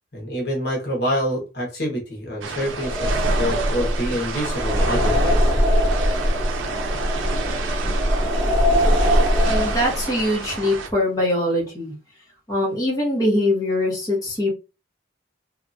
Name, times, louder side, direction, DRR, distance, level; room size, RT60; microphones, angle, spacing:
voice 1, 0.1-5.5, equal, 55° left, -2 dB, 1.1 m, -27 dB
sound 1, 2.4-10.9, right 5 dB, 90° right, 0.5 m, -30 dB
sound 2, 2.7-10.3, equal, 20° right, 0.4 m, -21 dB
voice 2, 9.4-11.9 12.5-14.5, left 1 dB, 20° left, -4 dB, 1.0 m, -22 dB
2.7 x 2.4 x 2.6 m, 0.29 s
head